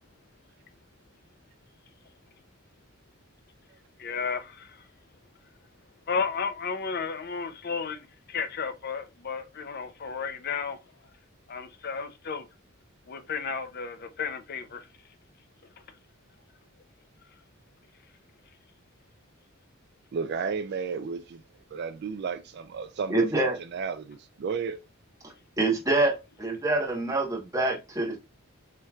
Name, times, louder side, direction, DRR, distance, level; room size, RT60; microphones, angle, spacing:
voice 1, 4.0-4.8 6.1-10.8 11.5-12.5 13.1-14.9, left 5 dB, 50° left, 0.5 m, -33 dB
voice 2, 20.1-21.4 21.7-24.8, right 5 dB, 55° right, 0.4 m, -33 dB
voice 3, 23.1-23.5 25.6-28.2, right 2 dB, 15° right, 1.1 m, -26 dB
4.5 x 3.2 x 2.3 m
head